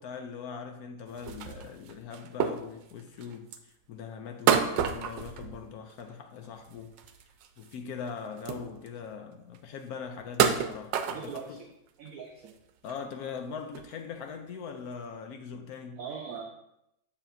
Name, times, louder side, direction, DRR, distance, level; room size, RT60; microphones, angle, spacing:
voice 1, 0.0-6.9 7.6-11.6 12.8-16.0, left 6 dB, 70° left, 0.9 m, -41 dB
sound 1, 1.1-3.7 4.5-6.1 6.4-7.8 8.0-8.1 8.4-9.0 9.5-9.6 10.2-11.6 12.1-12.2 12.5-13.0 13.4-13.5 13.7-13.9 14.8-14.9, right 8 dB, 80° right, 1.3 m, -30 dB
voice 2, 11.1-11.6 12.0-12.5 15.9-16.4, right 6 dB, 60° right, 1.0 m, -40 dB
7.1 x 7.0 x 2.6 m
omnidirectional pair, 2.0 m